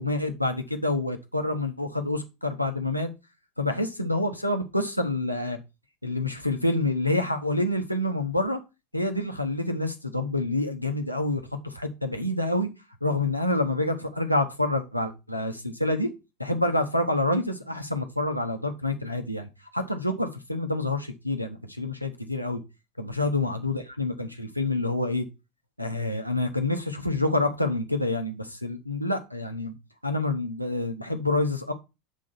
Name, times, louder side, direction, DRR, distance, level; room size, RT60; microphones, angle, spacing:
voice 1, 0.0-3.1 3.6-5.6 6.0-8.6 8.9-12.7 13.0-16.1 16.4-22.6 23.0-25.2 25.8-29.7 30.0-31.7, left 2 dB, 90° left, 1.0 m, -27 dB
7.3 x 3.8 x 5.9 m
figure-of-eight pair, 80°, 0 cm